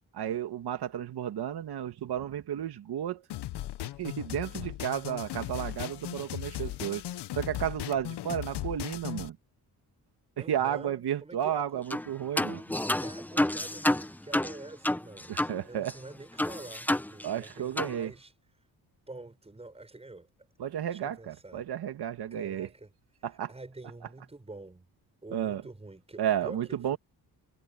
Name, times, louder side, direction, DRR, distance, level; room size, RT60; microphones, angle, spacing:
voice 1, 0.1-3.2 4.0-7.0 7.4-9.4 10.4-12.6 15.3-15.9 17.2-18.1 20.6-22.7 23.2-23.5 25.3-25.6 26.2-27.0, right 10 dB, 75° right, 2.2 m, -32 dB
sound 1, 3.3-9.3, left 14 dB, 85° left, 0.8 m, -37 dB
voice 2, 10.4-11.9 12.8-18.7 19.1-20.5 20.9-21.7 22.3-22.9 23.2-24.9 25.2-27.0, right 2 dB, 15° right, 5.9 m, -47 dB
sound 2, 11.9-12.1 12.4-15.6 15.9-16.0 16.4-17.5 17.8-18.0, left 1 dB, 5° left, 0.5 m, -29 dB
wide cardioid pair, 135°, 39 cm